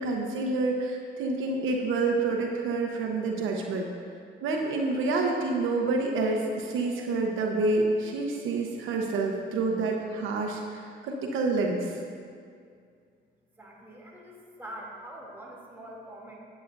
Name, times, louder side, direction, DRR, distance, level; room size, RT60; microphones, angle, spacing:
voice 1, 0.0-3.9 4.4-11.9, right 3 dB, 85° right, 1 dB, 1.1 m, -28 dB
voice 2, 13.6-16.3, right 1 dB, 10° right, -4 dB, 2.8 m, -44 dB
16.5 x 8.3 x 2.7 m, 2.2 s
cardioid pair, 90°, 20 cm